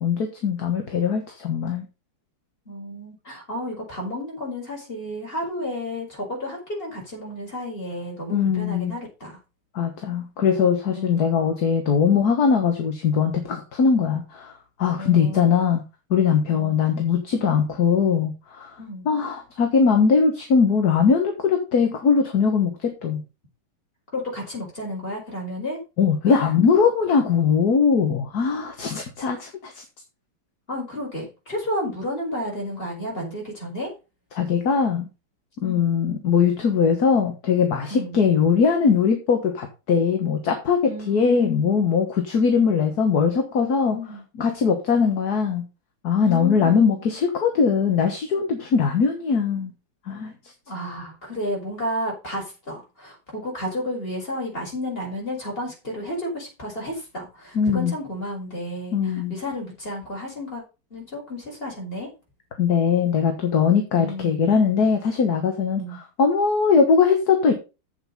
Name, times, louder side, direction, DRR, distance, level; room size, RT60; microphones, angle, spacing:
voice 1, 0.0-1.9 8.3-8.9 9.8-14.5 14.8-15.8 16.1-18.7 19.1-23.2 26.0-29.8 34.4-35.1 35.6-44.0 44.4-45.6 46.0-49.7 50.1-50.3 57.6-57.9 58.9-59.3 62.6-65.8 66.2-67.5, left 6 dB, 50° left, 5 dB, 1.7 m, -21 dB
voice 2, 2.7-9.4 10.9-11.5 14.9-15.8 16.5-16.9 18.8-19.1 24.1-25.8 30.7-33.9 35.6-36.0 37.9-38.2 40.8-41.7 43.8-44.2 46.2-47.0 50.7-60.6 60.9-62.1 63.9-64.4 65.8-66.0, left 1 dB, 25° left, -2 dB, 5.4 m, -32 dB
8.2 x 7.2 x 5.3 m, 0.29 s
omnidirectional pair, 2.4 m